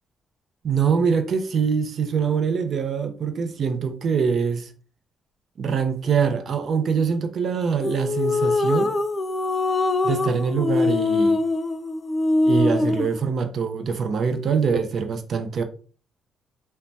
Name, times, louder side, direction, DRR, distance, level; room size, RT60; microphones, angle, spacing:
voice 1, 0.6-4.7 5.6-8.9 10.0-11.4 12.4-15.6, right 6 dB, 55° right, 0.5 m, -24 dB
sound 1, 7.8-13.2, left 3 dB, 35° left, 0.3 m, -23 dB
3.2 x 2.1 x 2.6 m
cardioid pair, 90°, 0 cm